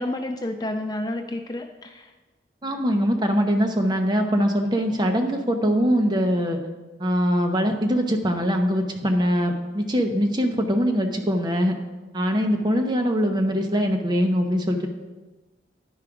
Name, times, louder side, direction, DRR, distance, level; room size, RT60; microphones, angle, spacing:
voice 1, 0.0-2.1, left 1 dB, 20° left, 5 dB, 0.3 m, -30 dB
voice 2, 2.6-6.6 7.0-11.8 12.1-14.9, equal, 25° right, 3 dB, 0.8 m, -22 dB
10.0 x 4.8 x 4.9 m, 1.2 s
head